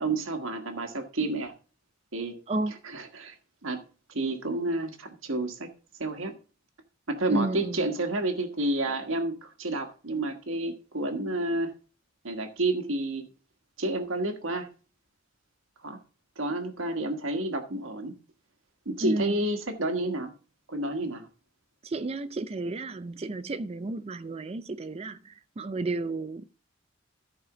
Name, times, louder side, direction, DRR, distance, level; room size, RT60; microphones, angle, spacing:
voice 1, 0.0-1.5 2.1-2.3 2.8-3.4 3.6-3.8 4.1-5.7 6.0-6.4 7.1-11.7 12.2-13.3 13.8-14.7 15.8-16.0 16.4-18.1 18.8-20.3 20.7-21.3, right 2 dB, 80° right, 1.4 m, -30 dB
voice 2, 7.3-7.9 19.0-19.4 21.8-26.5, right 2 dB, 30° right, 0.4 m, -32 dB
14.0 x 5.0 x 4.8 m
head